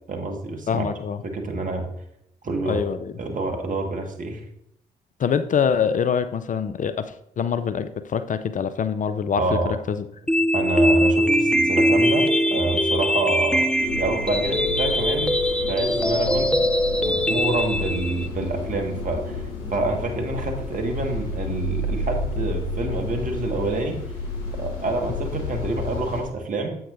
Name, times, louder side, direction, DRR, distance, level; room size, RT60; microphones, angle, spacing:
voice 1, 0.1-0.9 1.2-1.9 2.4-2.8 3.2-4.4 9.4-9.7 10.5-15.4 15.7-16.5 17.0-24.0 24.6-26.8, right 2 dB, 45° right, 3 dB, 1.7 m, -27 dB
voice 2, 0.7-1.2 2.7-3.1 5.2-10.1, left 7 dB, 45° left, 12 dB, 0.5 m, -25 dB
sound 1, 10.3-18.3, equal, 5° left, 0.6 m, -21 dB
sound 2, 13.8-26.2, left 2 dB, 80° left, 1.4 m, -31 dB
9.6 x 7.8 x 2.6 m, 0.73 s
hypercardioid pair, 45°, 19 cm